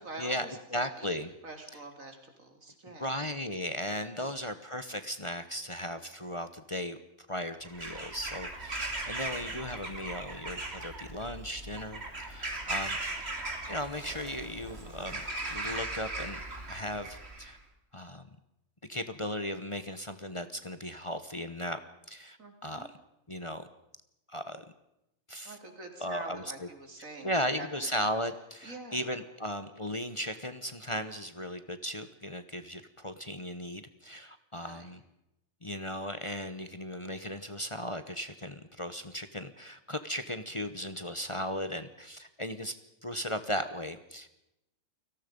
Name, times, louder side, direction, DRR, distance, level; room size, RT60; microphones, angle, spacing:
voice 1, 0.0-1.2 1.4-3.1 4.2-4.3 9.2-9.6 13.1-13.4 22.4-22.9 25.4-27.9 28.6-29.2 34.6-35.0, right 2 dB, 80° right, 4 dB, 4.0 m, -46 dB
voice 2, 0.7-1.3 3.0-7.0 7.3-13.0 13.7-15.2 15.5-16.4 16.7-17.6 17.9-18.2 18.9-21.8 22.1-22.4 22.6-22.9 23.3-23.6 24.3-24.6 25.3-25.5 26.0-26.4 27.2-35.0 35.6-42.7 43.0-44.3, equal, 25° left, 10 dB, 1.1 m, -36 dB
Bird vocalization bird call bird song / Crow, 7.7-17.5, right 2 dB, 50° right, 3.2 m, -38 dB
29.0 x 18.5 x 5.3 m, 0.87 s
omnidirectional pair, 1.4 m